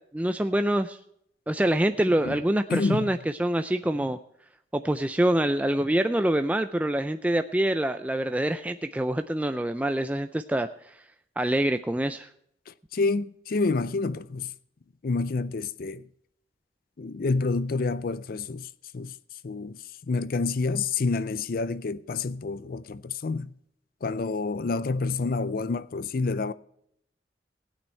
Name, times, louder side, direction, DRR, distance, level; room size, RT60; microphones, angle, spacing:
voice 1, 0.1-1.0 1.5-4.2 4.7-11.0 11.4-12.3, right 1 dB, 10° right, 0.4 m, -25 dB
voice 2, 2.7-3.1 12.7-14.5 15.0-16.0 17.0-19.2 19.4-19.8 20.1-23.5 24.0-26.5, left 3 dB, 55° left, 0.5 m, -28 dB
16.5 x 8.9 x 4.4 m
head